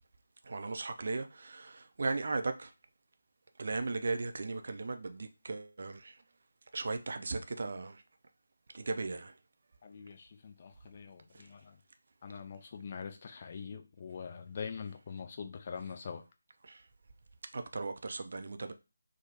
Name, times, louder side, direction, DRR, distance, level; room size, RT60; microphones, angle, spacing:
voice 1, 0.4-2.7 3.6-6.2 6.7-8.0 8.7-9.3 11.3-11.4 16.6-16.8 17.5-18.7, right 3 dB, 45° right, 0.3 m, -37 dB
voice 2, 9.8-11.8 12.2-16.2, left 6 dB, 30° left, 0.3 m, -44 dB
3.1 x 2.0 x 2.7 m
figure-of-eight pair, 155°, 0 cm